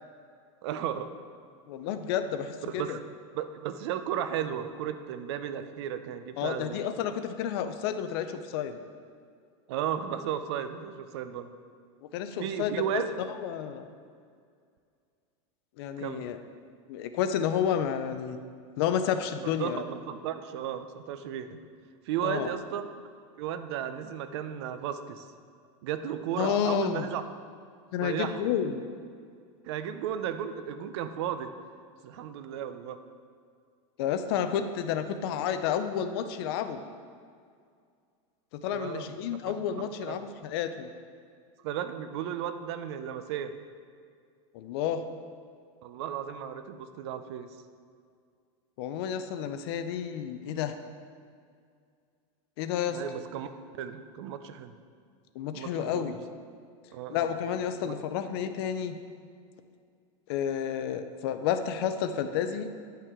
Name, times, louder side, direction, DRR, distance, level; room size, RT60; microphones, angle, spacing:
voice 1, 0.6-1.1 2.7-3.0 3.3-6.9 9.7-11.5 12.4-13.1 16.0-16.3 19.4-21.6 22.1-22.9 23.4-25.3 25.8-27.2 28.0-28.5 29.7-31.5 32.0-33.0 38.7-39.1 39.8-40.2 41.6-43.5 45.8-47.5 52.9-53.5 53.7-54.7 55.5-56.2 56.9-57.3 57.8-57.9, right 9 dB, 55° right, 10 dB, 0.5 m, -34 dB
voice 2, 1.7-3.0 6.4-8.8 12.1-13.0 13.4-13.9 15.8-16.4 16.9-18.4 18.8-19.8 22.2-22.5 26.4-27.1 27.9-28.9 34.0-36.8 38.5-40.9 44.5-45.0 48.8-50.7 52.6-53.0 55.4-56.2 57.1-59.0 60.3-62.7, left 8 dB, 50° left, 9 dB, 0.5 m, -30 dB
10.0 x 5.5 x 3.6 m, 2.2 s
supercardioid pair, 170°, 17 cm